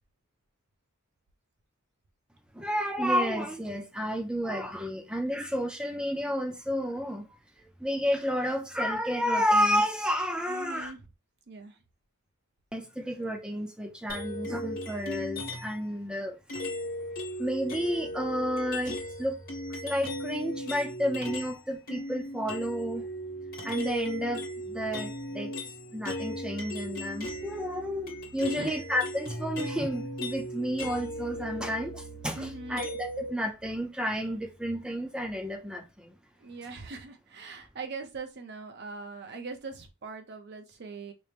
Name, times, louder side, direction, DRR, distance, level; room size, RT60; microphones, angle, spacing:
voice 1, 2.5-7.3 7.6-10.9 12.7-16.4 17.4-19.4 19.8-23.1 23.6-25.5 25.9-36.1, equal, 5° right, 0.5 m, -31 dB
voice 2, 10.5-11.0 11.5-11.8 28.4-28.7 32.4-32.8 36.4-41.1, right 3 dB, 55° right, 0.6 m, -41 dB
sound 1, 14.1-15.8 16.5-21.6 21.9-33.3, equal, 45° left, 1.0 m, -37 dB
4.3 x 2.1 x 3.3 m
head